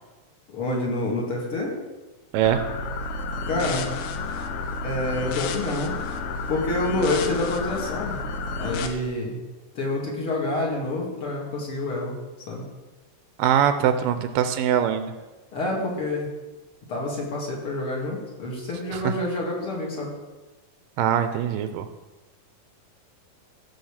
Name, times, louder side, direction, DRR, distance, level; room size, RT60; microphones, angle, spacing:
voice 1, 0.5-1.8 3.4-3.9 4.8-5.9 6.5-8.3 8.6-9.4 9.7-12.1 12.5-12.6 15.5-16.3 16.9-20.1, left 2 dB, 40° left, -2 dB, 3.1 m, -27 dB
voice 2, 2.3-2.6 13.4-15.1 18.9-19.1 21.0-21.9, right 9 dB, 80° right, 9 dB, 2.3 m, -22 dB
sound 1, 2.4-8.9, left 3 dB, 70° left, 2.5 m, -31 dB
16.0 x 6.2 x 7.3 m, 1.1 s
omnidirectional pair, 4.1 m